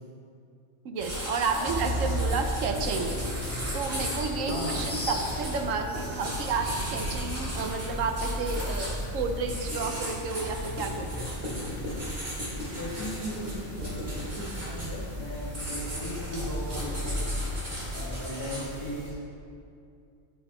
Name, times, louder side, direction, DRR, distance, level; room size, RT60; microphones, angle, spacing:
voice 1, 0.8-3.2 3.5-11.4, right 4 dB, 85° right, 5 dB, 1.1 m, -31 dB
sound 1, 1.0-19.1, equal, 50° right, 2.3 m, -37 dB
sound 2, 1.7-18.2, equal, 15° left, 0.7 m, -35 dB
voice 2, 4.5-4.9 12.6-17.2 17.9-19.2, equal, 50° left, -5 dB, 2.0 m, -37 dB
9.4 x 8.3 x 3.1 m, 2.5 s
omnidirectional pair, 1.3 m